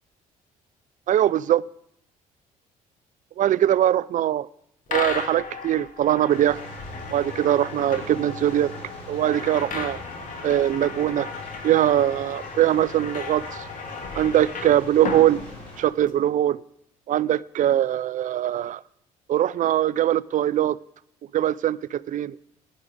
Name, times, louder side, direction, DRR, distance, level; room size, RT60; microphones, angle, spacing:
voice 1, 1.1-1.6 3.4-4.5 4.9-6.6 7.1-8.7 9.1-10.0 10.4-11.3 11.6-13.6 14.2-15.4 15.8-16.6 17.1-18.8 19.3-20.8 21.3-22.4, right 11 dB, 50° right, 0.4 m, -22 dB
sound 1, 4.9-16.1, left 4 dB, 50° left, 1.8 m, -35 dB
sound 2, 6.3-15.8, left 1 dB, 85° left, 5.2 m, -41 dB
15.0 x 11.0 x 3.7 m
supercardioid pair, 65°, 17 cm